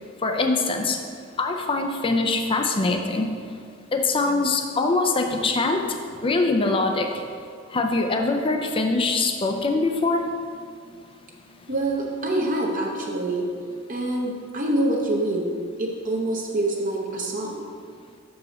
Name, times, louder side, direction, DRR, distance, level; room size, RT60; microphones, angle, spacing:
voice 1, 0.2-1.0 1.4-3.3 3.9-5.9 6.2-7.1 7.7-10.2, left 3 dB, 25° left, 4 dB, 0.5 m, -23 dB
voice 2, 11.7-13.5 13.9-15.5 15.8-17.7, right 1 dB, 40° right, -1 dB, 0.8 m, -25 dB
6.0 x 4.8 x 6.3 m, 2.2 s
head